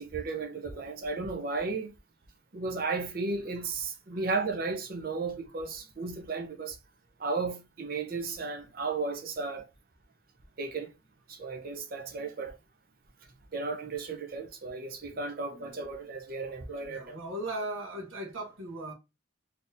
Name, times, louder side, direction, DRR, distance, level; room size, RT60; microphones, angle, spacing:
voice 1, 0.0-1.9 2.5-6.8 7.2-9.7 10.6-10.9 11.3-12.5 13.5-17.2, right 3 dB, 45° right, 0.6 m, -34 dB
voice 2, 15.5-15.8 16.8-18.9, right 1 dB, 90° right, 0.9 m, -39 dB
3.8 x 2.7 x 2.6 m
head